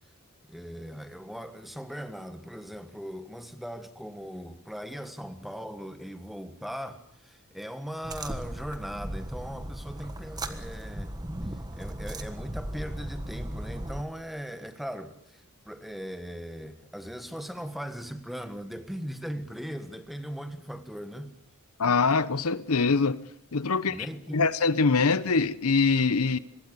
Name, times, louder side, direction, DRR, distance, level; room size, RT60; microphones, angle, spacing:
voice 1, 0.4-11.1 11.7-21.3 23.9-24.4, equal, ahead, 1.6 m, -39 dB
sound 1, 8.0-14.0, right 1 dB, 20° right, 1.4 m, -37 dB
voice 2, 21.8-23.2 23.5-24.1 24.3-26.4, left 4 dB, 85° left, 0.9 m, -23 dB
25.0 x 21.0 x 6.8 m
head